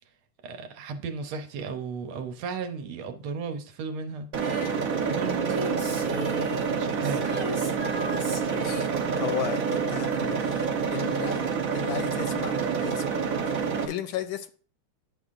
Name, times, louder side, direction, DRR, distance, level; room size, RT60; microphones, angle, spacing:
voice 1, 0.4-4.7 5.0-6.5 6.8-7.4, right 4 dB, 75° right, 1.6 m, -35 dB
sound 1, 4.3-13.8, right 6 dB, 60° right, 0.9 m, -28 dB
Female singing, 4.4-11.0 11.3-11.4, equal, 25° right, 0.6 m, -39 dB
voice 2, 8.5-8.9 9.2-13.2 13.8-14.5, left 12 dB, 75° left, 1.3 m, -35 dB
9.9 x 5.6 x 2.5 m
omnidirectional pair, 2.4 m